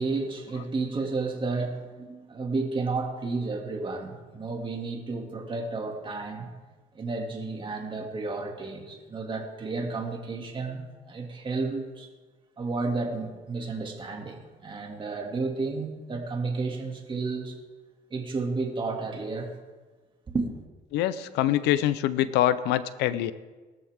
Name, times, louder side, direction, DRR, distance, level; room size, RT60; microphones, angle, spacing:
voice 1, 0.0-6.5 6.9-12.1 12.6-17.6 18.1-19.5 20.3-20.5, right 3 dB, 30° right, 2.6 m, -32 dB
voice 2, 20.9-23.3, left 12 dB, 90° left, 0.8 m, -24 dB
20.0 x 13.5 x 3.7 m
cardioid pair, 110°, 17 cm